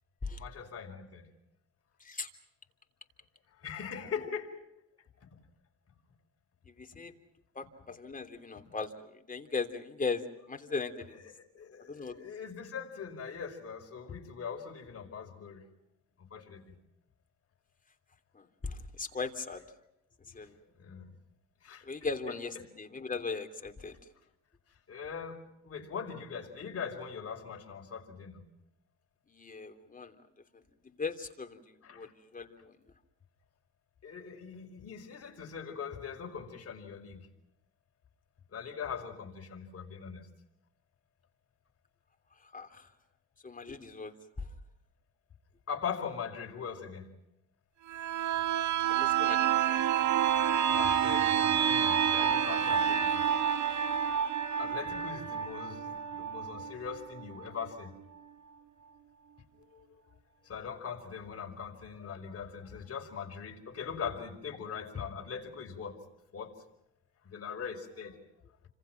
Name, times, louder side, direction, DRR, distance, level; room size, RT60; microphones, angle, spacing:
voice 1, 0.4-1.3 3.5-4.6 5.3-5.4 11.5-15.6 16.3-16.6 20.4-20.5 20.7-21.1 21.6-21.9 24.9-28.4 31.8-32.1 34.0-37.3 38.5-40.3 45.7-47.1 50.7-53.2 54.6-57.9 59.6-60.0 60.4-66.0 66.3-66.6 67.2-68.2, left 6 dB, 50° left, 3 dB, 5.2 m, -41 dB
voice 2, 2.0-2.3 6.7-7.1 7.5-11.2 11.9-12.2 18.3-19.6 20.3-20.6 21.8-24.0 29.3-30.1 30.5-32.8 42.4-42.9 43.4-44.5 48.9-49.8, left 4 dB, 25° left, 5 dB, 3.2 m, -39 dB
sound 1, 47.9-57.5 57.8-57.9, right 9 dB, 75° right, 1.8 m, -29 dB
30.0 x 26.0 x 6.0 m, 0.82 s
cardioid pair, 90°, 30 cm